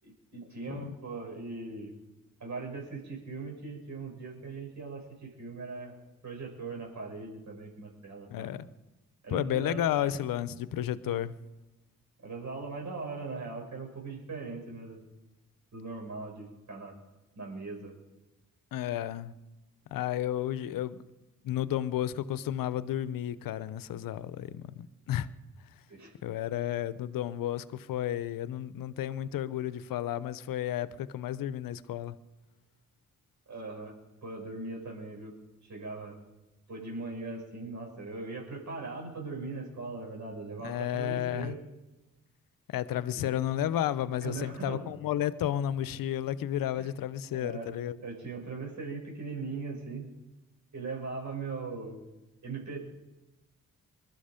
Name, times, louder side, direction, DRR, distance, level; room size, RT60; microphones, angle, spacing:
voice 1, 0.0-1.9 2.4-6.0 6.2-8.5 9.2-10.1 11.0-11.2 12.2-15.0 15.7-16.9 17.4-17.9 25.9-26.1 33.5-33.9 34.2-35.3 35.6-36.2 36.7-41.6 43.1-43.3 44.2-44.8 46.8-46.9 47.3-47.7 48.0-50.0 50.7-52.0 52.4-52.8, right 3 dB, 55° right, 6.5 m, -40 dB
voice 2, 8.3-8.7 9.3-11.4 18.7-19.3 19.9-21.0 21.4-25.3 26.2-32.2 40.6-41.6 42.7-48.0, left 11 dB, 80° left, 0.7 m, -32 dB
21.0 x 12.5 x 5.1 m
supercardioid pair, 55°, 34 cm